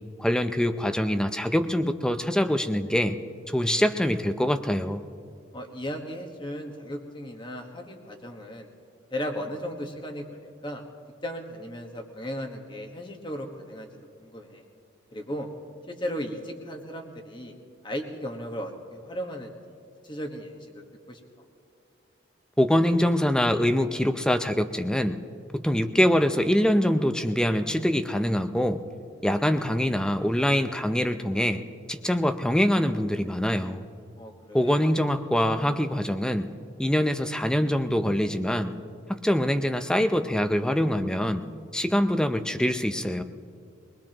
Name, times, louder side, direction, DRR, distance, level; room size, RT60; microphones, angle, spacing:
voice 1, 0.2-3.2 3.5-5.0 22.6-25.2 25.5-28.8 29.2-31.6 31.9-33.8 34.5-36.5 36.8-38.7 39.1-41.4 41.7-43.2, equal, 5° left, 9 dB, 0.5 m, -24 dB
voice 2, 5.5-8.7 9.1-10.8 11.2-13.9 14.2-14.6 15.1-15.5 15.9-17.5 17.8-19.5 20.0-20.7 21.1-21.2 34.2-34.8, equal, 25° left, 3 dB, 1.4 m, -36 dB
23.5 x 20.0 x 3.0 m, 2.4 s
head